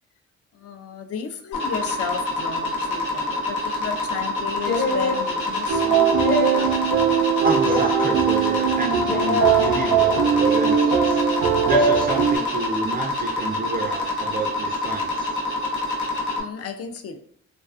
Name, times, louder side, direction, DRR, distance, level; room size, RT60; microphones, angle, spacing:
voice 1, 0.5-6.1 16.4-17.2, left 6 dB, 50° left, 8 dB, 0.4 m, -33 dB
sound 1, 1.5-16.4, left 2 dB, 85° left, 0.7 m, -27 dB
sound 2, 4.6-5.2 6.1-6.7 7.6-8.1 9.0-9.6 10.5-10.9 11.7-12.0, equal, 35° left, 0.8 m, -23 dB
sound 3, 5.7-12.4, right 7 dB, 85° right, 0.5 m, -21 dB
voice 2, 7.4-11.2 11.6-15.3, right 4 dB, 30° right, 2 dB, 0.3 m, -29 dB
2.3 x 2.3 x 2.4 m, 0.62 s
cardioid pair, 90°, 30 cm